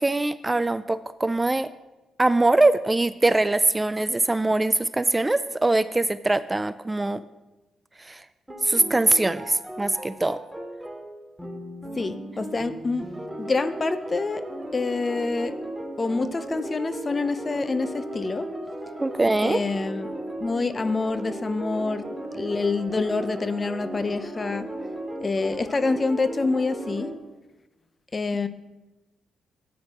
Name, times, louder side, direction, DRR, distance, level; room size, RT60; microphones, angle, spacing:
voice 1, 0.0-1.7 2.2-7.2 8.0-8.2 8.6-10.4 19.0-19.6, right 2 dB, 20° right, 15 dB, 0.4 m, -22 dB
sound 1, 8.5-27.1, right 1 dB, 5° right, 2.4 m, -36 dB
voice 2, 12.0-13.1 13.4-14.5 14.7-15.5 16.0-18.5 19.4-20.1 20.4-22.0 22.3-24.7 25.2-27.1 28.1-28.5, left 3 dB, 35° left, 12 dB, 0.7 m, -26 dB
13.0 x 9.4 x 2.9 m, 1.1 s
supercardioid pair, 60°, 0 cm